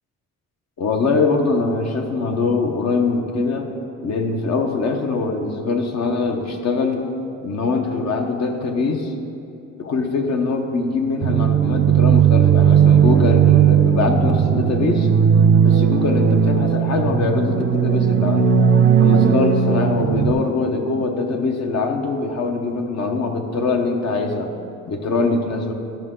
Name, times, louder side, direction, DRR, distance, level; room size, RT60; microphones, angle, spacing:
voice 1, 0.8-3.7 4.0-7.0 7.4-9.1 9.8-15.1 15.6-18.5 19.0-24.5 24.9-25.7, left 3 dB, 60° left, 4 dB, 1.0 m, -22 dB
sound 1, 11.2-20.3, right 8 dB, 45° right, 0.5 m, -16 dB
12.0 x 5.5 x 3.8 m, 2.7 s
cardioid pair, 90°, 30 cm